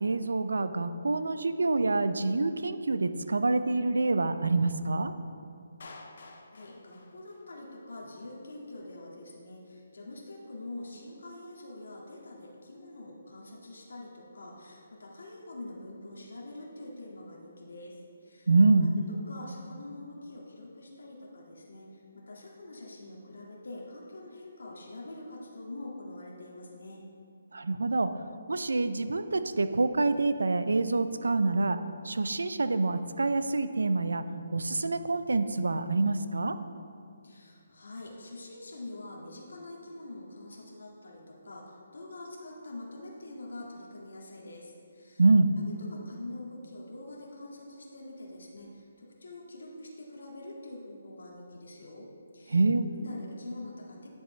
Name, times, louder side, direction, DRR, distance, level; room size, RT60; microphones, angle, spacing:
voice 1, 0.0-5.1 18.5-18.9 27.5-28.1 28.5-31.8 32.0-34.2 34.5-36.6 45.2-45.5 52.5-52.9, right 3 dB, 85° right, 11 dB, 0.5 m, -26 dB
Clapping, 5.8-7.8, left 3 dB, 60° left, 0.8 m, -50 dB
voice 2, 6.5-18.5 18.8-27.0 37.2-45.2 45.7-54.1, left 2 dB, 80° left, -3 dB, 1.9 m, -45 dB
10.0 x 7.1 x 3.2 m, 2.4 s
hypercardioid pair, 160°, 0 cm